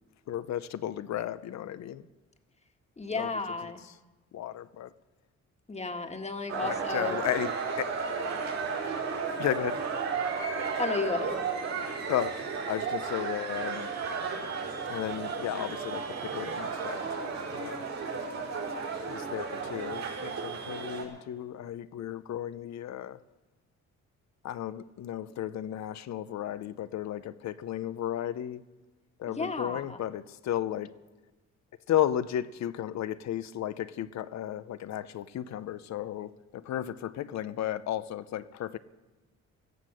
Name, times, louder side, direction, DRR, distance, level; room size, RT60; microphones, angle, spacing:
voice 1, 0.3-2.1 3.2-3.3 4.3-4.9 6.6-7.5 7.8-7.9 9.4-9.8 12.1-12.4 12.7-13.9 14.9-17.2 17.5-17.9 19.1-23.2 24.4-28.6 29.2-30.9 31.9-38.8, left 11 dB, 65° left, 0.7 m, -34 dB
voice 2, 3.0-3.8 5.7-7.2 10.8-11.4 29.3-30.0, left 3 dB, 20° left, 1.6 m, -33 dB
sound 1, 6.5-21.0, right 5 dB, 60° right, 5.2 m, -33 dB
16.5 x 14.5 x 6.3 m
cardioid pair, 90°, 30 cm